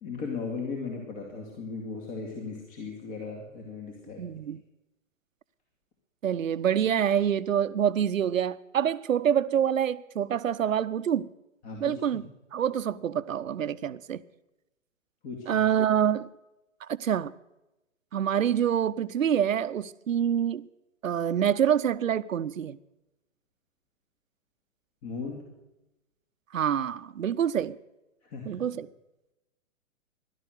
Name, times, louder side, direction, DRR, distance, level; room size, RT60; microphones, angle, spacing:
voice 1, 0.0-4.3 11.6-12.2 15.2-15.6 25.0-25.5 28.2-28.6, left 4 dB, 30° left, 2.6 m, -37 dB
voice 2, 4.2-4.6 6.2-11.3 11.8-12.3 12.5-14.2 15.5-16.3 16.8-17.3 18.1-20.7 21.0-22.8 26.5-27.8 28.5-28.9, right 9 dB, 80° right, 0.8 m, -26 dB
16.5 x 12.0 x 6.6 m
hypercardioid pair, 125°, 39 cm